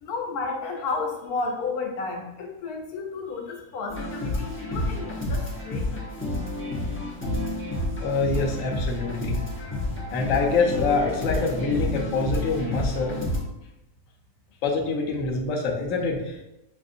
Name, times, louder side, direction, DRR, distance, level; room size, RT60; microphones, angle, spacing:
voice 1, 0.0-6.0, left 4 dB, 90° left, 2 dB, 1.2 m, -32 dB
sound 1, 3.9-13.4, left 1 dB, 10° left, 0.8 m, -30 dB
voice 2, 8.0-9.4 10.1-13.2 14.6-16.4, left 3 dB, 65° left, 0 dB, 1.0 m, -25 dB
6.3 x 2.5 x 2.6 m, 0.91 s
omnidirectional pair, 1.6 m